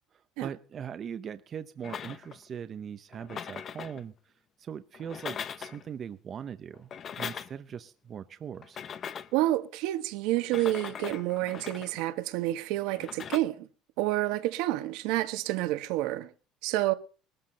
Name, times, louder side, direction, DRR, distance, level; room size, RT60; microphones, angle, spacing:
voice 1, 0.4-4.1 4.6-6.9 7.2-8.8, right 8 dB, 30° right, 0.7 m, -40 dB
sound 1, 1.8-2.5 3.1-4.0 4.9-5.9 6.7-7.7 8.6-9.4 10.4-12.1 12.9-13.4, left 7 dB, 30° left, 0.7 m, -40 dB
voice 2, 9.3-13.7 14.0-16.3 16.6-16.9, right 15 dB, 70° right, 1.3 m, -29 dB
20.0 x 13.0 x 4.1 m
cardioid pair, 165°, 0 cm